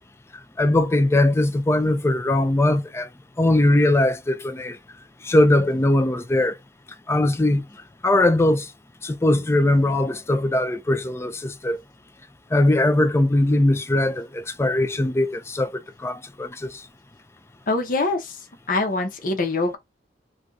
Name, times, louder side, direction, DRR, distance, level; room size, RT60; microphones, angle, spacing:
voice 1, 0.6-3.1 3.4-4.8 5.2-6.6 7.1-7.7 8.0-8.7 9.0-11.8 12.5-16.8, left 1 dB, 15° left, 0.4 m, -20 dB
voice 2, 17.7-18.4 18.7-19.8, left 3 dB, 50° left, 0.9 m, -24 dB
2.5 x 2.4 x 3.8 m
head